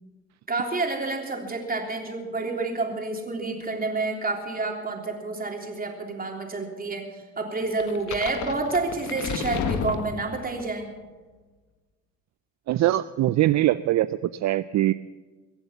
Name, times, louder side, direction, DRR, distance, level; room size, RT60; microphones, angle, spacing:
voice 1, 0.5-10.9, right 3 dB, 30° right, 1 dB, 3.4 m, -29 dB
sound 1, 7.8-10.7, left 6 dB, 75° left, 1.4 m, -31 dB
voice 2, 12.7-14.1 14.4-14.9, right 15 dB, 65° right, 14 dB, 0.5 m, -22 dB
23.0 x 8.1 x 7.0 m, 1.3 s
cardioid pair, 90°, 30 cm